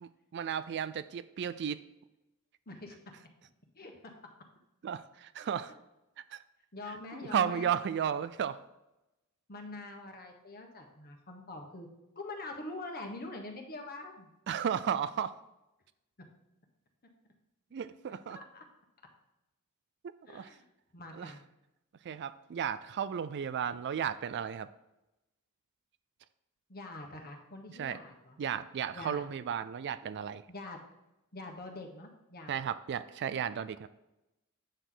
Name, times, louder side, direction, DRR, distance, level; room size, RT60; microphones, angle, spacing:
voice 1, 0.0-1.8 4.8-5.7 6.3-6.4 7.3-8.6 14.5-15.3 17.7-18.4 20.3-20.5 21.2-21.3 22.0-24.7 27.7-28.0 28.4-30.4 32.5-33.9, right 8 dB, 50° right, 14 dB, 0.4 m, -34 dB
voice 2, 2.7-3.0 3.7-3.9 6.7-7.7 9.5-11.9 12.1-14.3 18.3-18.6 20.3-20.6 20.9-21.4 26.7-28.4 28.9-29.2 30.5-30.8 31.3-32.6, left 2 dB, 45° left, 3 dB, 1.3 m, -44 dB
8.9 x 6.4 x 3.9 m, 0.94 s
head